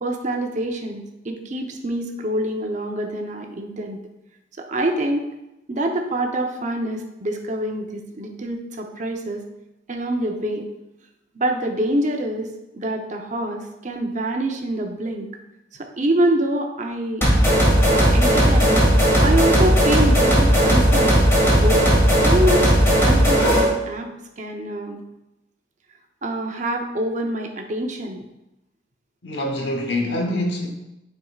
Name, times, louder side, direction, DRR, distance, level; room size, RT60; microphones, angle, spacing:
voice 1, 0.0-4.0 4.6-5.3 5.7-9.4 9.9-10.7 11.3-15.3 15.7-17.3 17.9-18.8 19.2-21.2 21.5-21.9 22.2-24.1 24.4-25.0 26.2-28.2, right 1 dB, 45° right, 3 dB, 0.7 m, -25 dB
sound 1, 17.2-23.7, equal, 15° left, 1.9 m, -16 dB
voice 2, 29.2-30.7, left 1 dB, 70° left, 2 dB, 1.1 m, -25 dB
9.6 x 4.6 x 2.4 m, 0.93 s
head